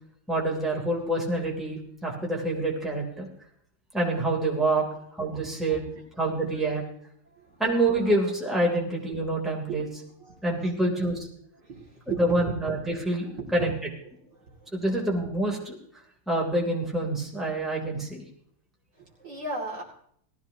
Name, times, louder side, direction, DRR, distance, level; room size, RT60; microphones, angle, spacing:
voice 1, 0.3-3.3 3.9-4.9 5.1-5.8 6.2-6.8 7.6-9.9 10.4-11.3 12.1-13.7 14.7-15.8 16.3-18.2, right 2 dB, ahead, -2 dB, 3.1 m, -26 dB
voice 2, 7.3-7.6 9.7-9.8 10.2-10.4 11.6-12.5 13.3-13.7 14.3-14.8 18.9-19.8, right 4 dB, 50° right, -3 dB, 3.2 m, -37 dB
19.0 x 15.5 x 2.9 m, 0.65 s
omnidirectional pair, 2.4 m